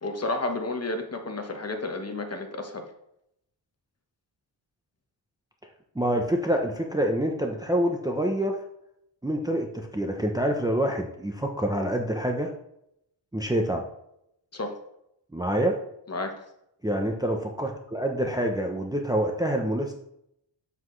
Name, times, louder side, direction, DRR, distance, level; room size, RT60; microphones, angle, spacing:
voice 1, 0.0-2.8 14.5-14.7 16.1-16.3, left 2 dB, 30° left, 4 dB, 1.2 m, -31 dB
voice 2, 5.9-8.6 9.2-12.5 13.3-13.8 15.3-15.8 16.8-19.9, right 1 dB, 10° right, 2 dB, 0.7 m, -26 dB
8.1 x 7.3 x 3.2 m, 0.77 s
wide cardioid pair, 115°, 46 cm